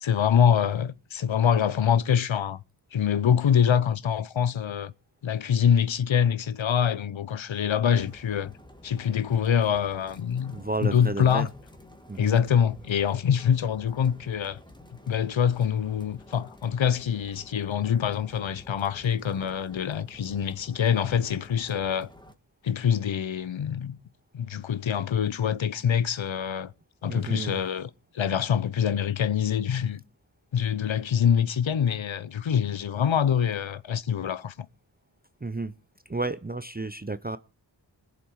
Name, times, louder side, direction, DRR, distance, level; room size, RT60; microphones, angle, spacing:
voice 1, 0.0-2.6 2.9-4.9 5.2-8.5 8.8-11.5 12.2-14.6 15.1-22.1 22.6-24.0 24.3-26.7 27.0-27.9 28.1-30.0 30.5-34.7, left 8 dB, 75° left, 0.8 m, -25 dB
sound 1, 7.9-22.3, left 1 dB, 10° left, 1.8 m, -51 dB
voice 2, 10.5-11.5 12.1-12.4 27.1-27.6 35.4-35.7 36.1-37.4, right 2 dB, 20° right, 0.7 m, -32 dB
20.5 x 7.2 x 4.7 m
wide cardioid pair, 45°, 47 cm